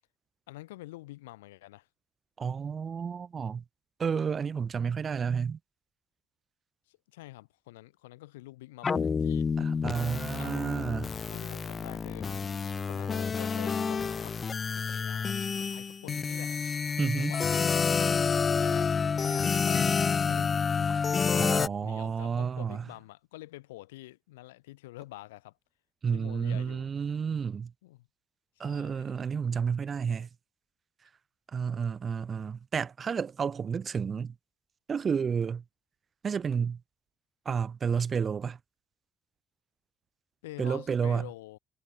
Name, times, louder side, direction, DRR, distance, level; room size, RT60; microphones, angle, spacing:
voice 1, 0.5-1.9 6.9-9.5 10.4-11.0 11.3-12.3 12.9-16.6 17.2-17.8 18.5-21.0 21.8-25.5 26.1-26.9 27.8-28.1 28.6-29.2 40.4-41.6, left 18 dB, 80° left, 2.7 m, -47 dB
voice 2, 2.4-3.6 4.0-5.6 9.8-11.1 17.0-17.3 20.9-21.0 21.3-22.8 26.0-27.7 28.6-30.3 31.5-34.3 34.9-35.6 36.2-36.8 37.4-38.6 40.6-41.3, right 6 dB, 40° right, 2.7 m, -31 dB
sound 1, 8.8-21.7, left 5 dB, 35° left, 1.6 m, -29 dB
hypercardioid pair, 55°, 0 cm